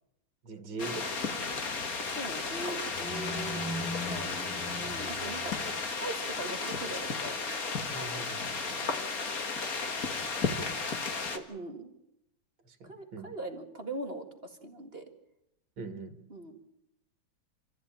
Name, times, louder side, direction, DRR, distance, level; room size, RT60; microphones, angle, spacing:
voice 1, 0.4-1.1 1.5-1.8 7.9-8.8 12.6-13.3 15.8-16.2, right 3 dB, 70° right, 7 dB, 2.9 m, -42 dB
sound 1, 0.8-11.4, left 4 dB, 45° left, 2.1 m, -34 dB
voice 2, 2.0-3.6 4.0-4.3 4.7-5.6 5.9-7.4 8.8-9.1 11.3-11.9 12.8-15.1 16.3-16.6, right 2 dB, 30° right, 4 dB, 2.1 m, -41 dB
sound 2, 2.9-5.9, left 1 dB, 70° left, 6.3 m, -40 dB
27.0 x 14.5 x 9.0 m, 0.85 s
omnidirectional pair, 2.2 m